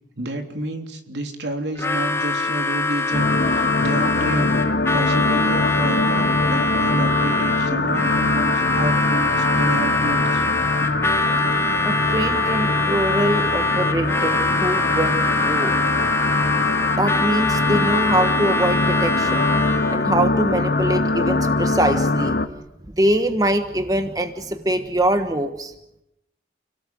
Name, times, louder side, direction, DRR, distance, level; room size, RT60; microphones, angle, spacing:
voice 1, 0.2-4.6 4.9-10.4, right 1 dB, 80° right, 4 dB, 3.4 m, -29 dB
Harmonica, 1.8-20.0, left 2 dB, 15° left, 1.2 m, -24 dB
sound 1, 3.1-22.5, left 2 dB, 65° left, 1.6 m, -22 dB
voice 2, 11.8-15.8 17.0-19.5 19.9-22.4 22.9-25.7, right 1 dB, 20° right, 8 dB, 1.3 m, -23 dB
30.0 x 18.0 x 7.8 m, 0.86 s
head